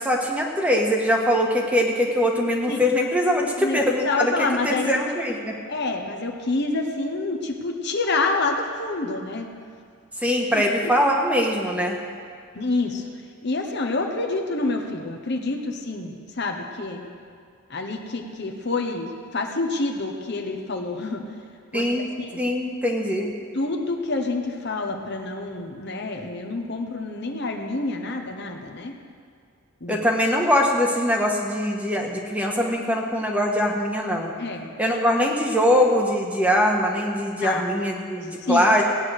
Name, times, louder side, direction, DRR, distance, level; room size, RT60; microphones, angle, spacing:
voice 1, 0.0-5.6 10.2-12.0 21.7-22.1 22.4-23.3 29.9-34.3 34.8-38.8, equal, 5° right, 0 dB, 1.4 m, -22 dB
voice 2, 4.0-5.0 5.7-9.5 10.5-10.9 12.5-13.0 13.4-17.1 17.7-21.2 21.7-21.9 22.2-22.4 23.5-28.9 29.8-30.0 34.4-34.7 37.4-37.6 38.2-38.7, left 3 dB, 50° left, 3 dB, 1.1 m, -27 dB
17.0 x 9.6 x 6.4 m, 2.2 s
head